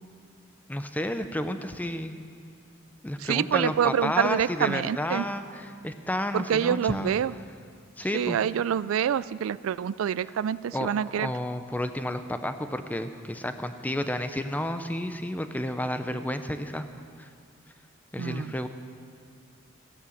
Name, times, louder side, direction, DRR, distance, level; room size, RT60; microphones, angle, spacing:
voice 1, 0.7-2.2 3.0-7.1 8.0-8.4 10.7-10.9 11.2-16.9 17.2-17.3 18.1-18.7, left 1 dB, 10° left, 9 dB, 0.6 m, -31 dB
voice 2, 3.2-5.2 6.3-7.3 8.1-11.3 18.2-18.5, right 8 dB, 80° right, 18 dB, 0.3 m, -26 dB
15.5 x 11.0 x 7.2 m, 2.2 s
head